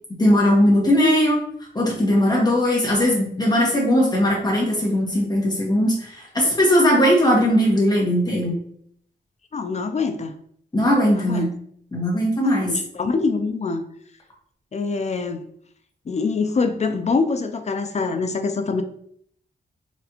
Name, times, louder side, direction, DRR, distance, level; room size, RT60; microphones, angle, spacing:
voice 1, 0.2-1.4 1.7-8.6 10.7-11.5 11.9-12.7, equal, 20° left, -3 dB, 1.3 m, -19 dB
voice 2, 9.5-10.4 11.1-11.5 12.4-13.8 14.7-15.4 16.1-18.8, left 4 dB, 40° left, 8 dB, 0.4 m, -24 dB
4.0 x 3.3 x 2.9 m, 0.65 s
wide cardioid pair, 170°, 18 cm